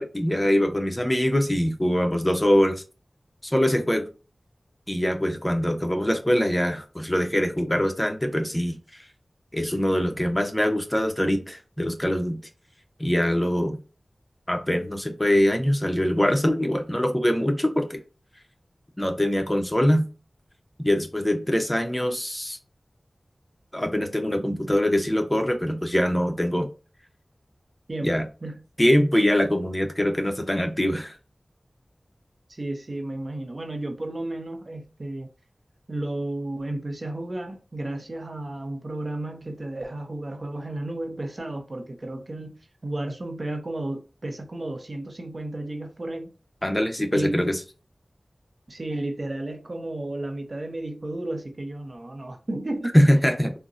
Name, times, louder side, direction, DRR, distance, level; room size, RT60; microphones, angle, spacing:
voice 1, 0.0-2.8 3.4-4.1 4.9-9.0 9.5-12.4 13.0-13.8 14.5-18.0 19.0-20.1 20.8-22.6 23.7-26.7 28.0-28.3 28.8-31.2 46.6-47.5 52.9-53.5, equal, 20° left, 0.7 m, -23 dB
voice 2, 27.9-28.6 32.5-35.3 35.9-42.5 42.8-46.3 47.1-47.6 48.7-53.0, right 1 dB, 55° right, 0.6 m, -33 dB
3.8 x 2.1 x 2.5 m
cardioid pair, 40°, 0 cm